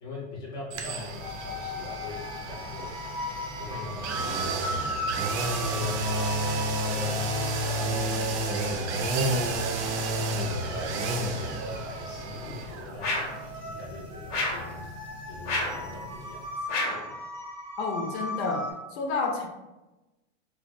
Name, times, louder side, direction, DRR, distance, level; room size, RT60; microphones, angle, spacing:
voice 1, 0.0-2.9 3.6-7.3 7.6-10.0 10.4-11.0 11.3-13.2 13.5-14.8 15.3-16.4 16.9-17.1, left 2 dB, 10° left, -5 dB, 0.5 m, -42 dB
sound 1, 0.7-16.5 16.8-16.9, right 1 dB, 75° right, 0.6 m, -31 dB
sound 2, 1.2-18.7, left 1 dB, 35° right, 0.7 m, -38 dB
sound 3, 13.0-13.4 14.3-14.7 15.5-15.8 16.7-17.1, left 2 dB, 90° left, 0.8 m, -29 dB
voice 2, 17.8-19.5, left 4 dB, 65° left, 3 dB, 0.6 m, -30 dB
2.7 x 2.1 x 2.5 m, 1.0 s
supercardioid pair, 155°, 35 cm